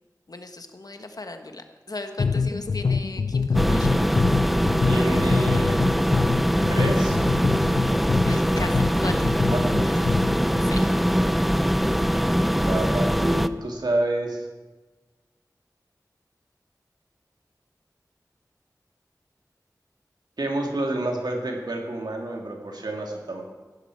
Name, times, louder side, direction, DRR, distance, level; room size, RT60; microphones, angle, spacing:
voice 1, 0.3-4.1 8.2-9.3 9.8-10.0 10.6-10.9, left 2 dB, 65° left, 6 dB, 1.4 m, -37 dB
sound 1, 2.2-10.6, left 5 dB, 85° left, 0.5 m, -26 dB
sound 2, 3.5-13.5, equal, ahead, 0.5 m, -22 dB
voice 2, 4.9-5.8 6.7-7.2 9.5-10.0 12.6-14.5 20.4-23.4, right 1 dB, 90° right, 1 dB, 2.3 m, -28 dB
15.5 x 12.0 x 4.7 m, 1.3 s
wide cardioid pair, 45°, 7 cm